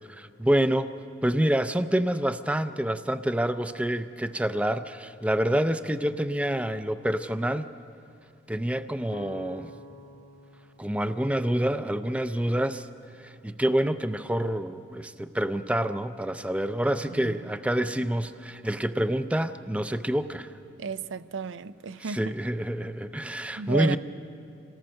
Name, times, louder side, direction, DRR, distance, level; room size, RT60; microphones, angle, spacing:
voice 1, 0.1-0.9 1.2-7.7 8.5-9.7 10.8-12.9 13.2-20.5 22.0-24.0, right 1 dB, 5° right, 0.4 m, -27 dB
sound 1, 9.1-12.9, left 1 dB, 70° left, 1.2 m, -48 dB
voice 2, 20.8-22.2 23.6-24.0, right 5 dB, 90° right, 0.5 m, -33 dB
26.5 x 18.5 x 6.4 m
head